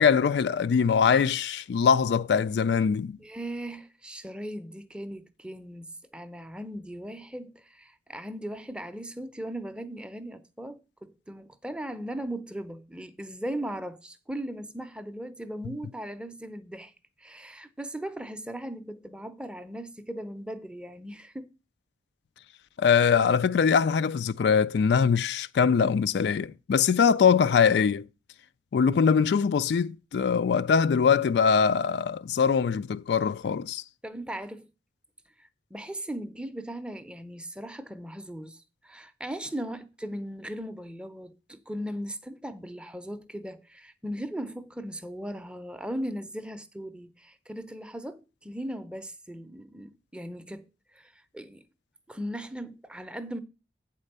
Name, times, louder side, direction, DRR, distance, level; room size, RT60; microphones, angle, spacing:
voice 1, 0.0-3.2 22.8-28.1 28.7-33.8, left 6 dB, 70° left, 0.3 m, -22 dB
voice 2, 3.2-16.9 17.2-21.5 34.0-34.7 35.4-50.7 50.9-51.6 52.1-53.4, right 1 dB, 5° right, 0.6 m, -38 dB
8.2 x 4.4 x 6.6 m
head